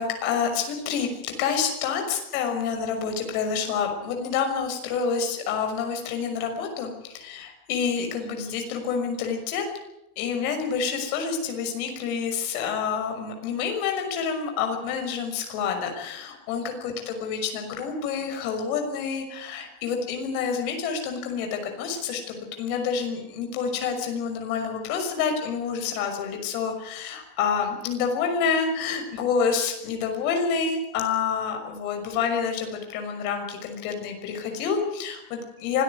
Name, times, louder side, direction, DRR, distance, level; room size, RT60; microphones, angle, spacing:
voice 1, 0.0-9.6 10.2-35.8, left 6 dB, 75° left, 4 dB, 6.2 m, -28 dB
24.5 x 14.5 x 9.6 m, 0.87 s
supercardioid pair, 140°, 44 cm